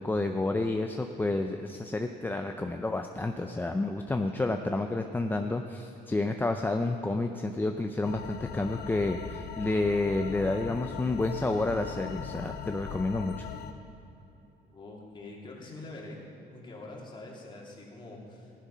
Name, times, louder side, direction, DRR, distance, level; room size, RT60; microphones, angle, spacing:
voice 1, 0.0-13.5, left 2 dB, 10° left, 5 dB, 0.5 m, -30 dB
sound 1, 8.0-13.7, left 8 dB, 75° left, 0.8 m, -40 dB
voice 2, 14.6-16.2 16.5-18.5, left 2 dB, 30° left, -3 dB, 2.9 m, -45 dB
14.5 x 10.0 x 5.6 m, 2.9 s
cardioid pair, 110°, 17 cm